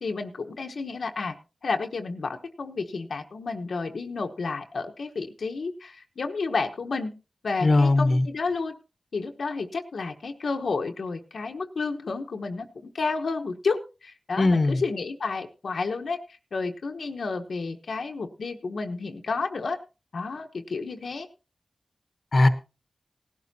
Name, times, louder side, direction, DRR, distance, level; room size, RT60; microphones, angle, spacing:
voice 1, 0.0-1.3 1.6-7.1 7.4-8.7 9.1-16.2 16.5-19.8 20.1-21.3, left 4 dB, 85° left, 4 dB, 1.1 m, -31 dB
voice 2, 7.6-8.3 14.4-14.8 22.3-22.5, left 2 dB, 55° left, 11 dB, 1.1 m, -19 dB
18.0 x 12.0 x 2.8 m, 0.30 s
cardioid pair, 50°, 0 cm